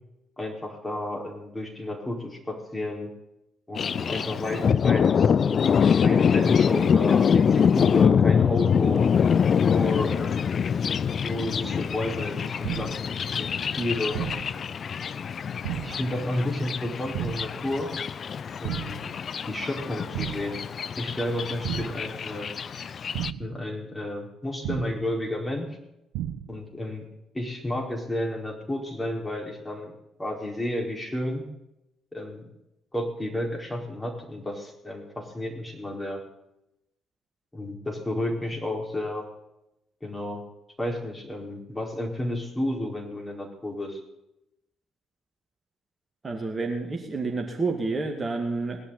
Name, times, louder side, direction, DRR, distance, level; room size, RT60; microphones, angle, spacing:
voice 1, 0.4-3.1 3.7-5.7 6.0-9.1 9.5-10.4 11.2-14.2 15.8-17.9 18.6-19.0 19.5-20.6 21.0-22.5 23.4-25.7 26.5-27.1 27.3-29.9 30.2-31.4 32.1-32.5 32.9-36.2 37.5-39.3 40.0-40.5 40.8-44.0, left 1 dB, 15° left, 0 dB, 4.7 m, -31 dB
Thunder, 3.7-23.3, left 7 dB, 45° left, 0.5 m, -24 dB
sound 1, 12.6-13.1 14.1-14.6 15.6-16.1 17.1-17.6 18.6-19.1 20.1-20.6 21.6-22.1 23.1-23.6 24.6-25.1 26.1-26.6, right 11 dB, 65° right, 0.8 m, -33 dB
voice 2, 46.2-48.8, right 3 dB, 30° right, 2 dB, 2.3 m, -29 dB
19.0 x 11.0 x 4.2 m, 0.85 s
figure-of-eight pair, 45°, 0 cm